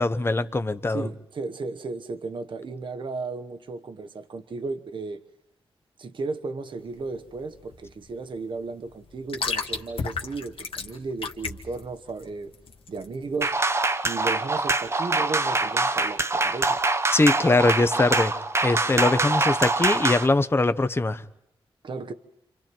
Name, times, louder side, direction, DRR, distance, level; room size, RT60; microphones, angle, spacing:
voice 1, 0.0-1.1 17.1-18.3 18.6-21.2, left 2 dB, 25° left, 1.0 m, -22 dB
voice 2, 0.9-5.2 6.0-12.5 12.9-13.6 14.0-16.8 21.8-22.1, right 3 dB, 55° right, 1.1 m, -34 dB
sound 1, 6.8-13.5, left 5 dB, 65° left, 1.8 m, -35 dB
sound 2, 13.4-20.3, right 3 dB, 25° right, 0.9 m, -24 dB
30.0 x 27.5 x 4.6 m
wide cardioid pair, 120°, 10 cm